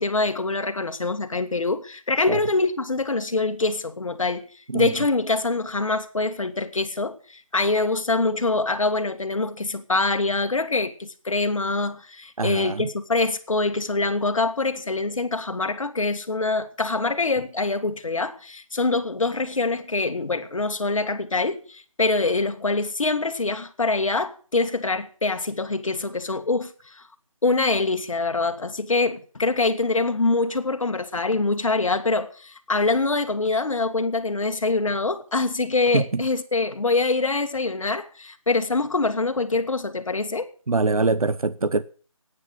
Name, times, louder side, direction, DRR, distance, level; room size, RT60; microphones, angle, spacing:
voice 1, 0.0-4.5 4.7-27.0 27.4-40.5, left 3 dB, 65° left, 1.8 m, -24 dB
voice 2, 12.4-12.9 35.9-36.2 40.7-41.8, right 3 dB, 85° right, 0.8 m, -23 dB
11.5 x 9.7 x 9.0 m
figure-of-eight pair, 165°, 18 cm